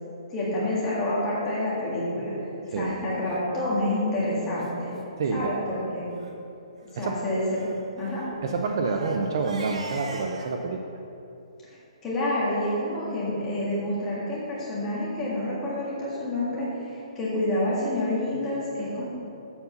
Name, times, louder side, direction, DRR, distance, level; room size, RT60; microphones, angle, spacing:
voice 1, 0.3-4.9 5.3-6.1 6.9-7.6 8.0-8.2 11.6-11.8 12.0-19.0, left 1 dB, 10° left, -8 dB, 1.7 m, -28 dB
voice 2, 2.7-3.0 5.2-5.5 7.0-7.2 8.4-10.8, right 4 dB, 40° right, 3 dB, 0.5 m, -28 dB
Crying sobbing, 3.7-3.9 4.6-4.7 5.0-5.1 5.4-5.6 6.1-6.3 7.5-10.6, right 3 dB, 70° right, 1.1 m, -42 dB
7.2 x 5.3 x 6.7 m, 2.7 s
hypercardioid pair, 175°, 3 cm